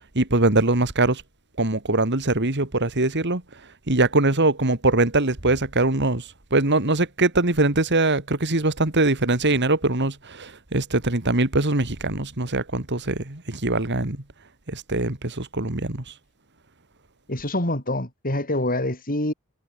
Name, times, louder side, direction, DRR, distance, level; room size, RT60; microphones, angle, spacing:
voice 1, 0.1-1.2 1.6-3.4 3.9-6.2 6.5-14.2 14.7-16.0, right 2 dB, 50° right, 2.6 m, -22 dB
voice 2, 17.3-19.3, left 1 dB, 40° left, 7.1 m, -25 dB
head